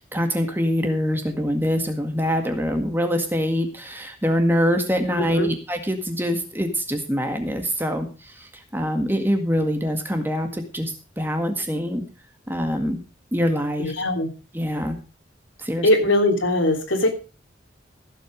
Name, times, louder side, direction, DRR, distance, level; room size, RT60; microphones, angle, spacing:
voice 1, 0.1-12.0 12.5-13.0 13.3-13.9 14.5-15.0 15.6-15.9, equal, 10° right, 5 dB, 1.8 m, -24 dB
voice 2, 13.8-14.3 15.8-17.1, left 1 dB, 85° left, 4 dB, 3.2 m, -20 dB
15.5 x 8.0 x 5.2 m, 0.34 s
head